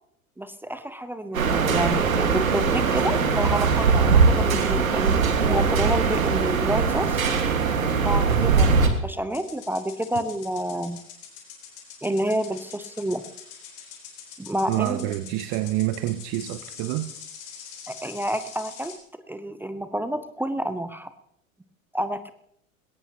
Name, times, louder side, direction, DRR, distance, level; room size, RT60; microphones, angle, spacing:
voice 1, 0.4-7.2 8.0-11.0 12.0-13.2 14.4-15.1 17.9-18.9 19.3-21.1 21.9-22.3, right 1 dB, 5° right, 11 dB, 0.7 m, -29 dB
sound 1, 1.3-8.9, right 5 dB, 75° right, 1.9 m, -21 dB
voice 2, 8.2-8.6 14.7-17.1, right 15 dB, 40° right, 12 dB, 0.8 m, -27 dB
sound 2, 9.3-19.0, left 7 dB, 50° left, 4.2 m, -44 dB
20.5 x 17.0 x 2.9 m, 0.72 s
figure-of-eight pair, 80°, 42 cm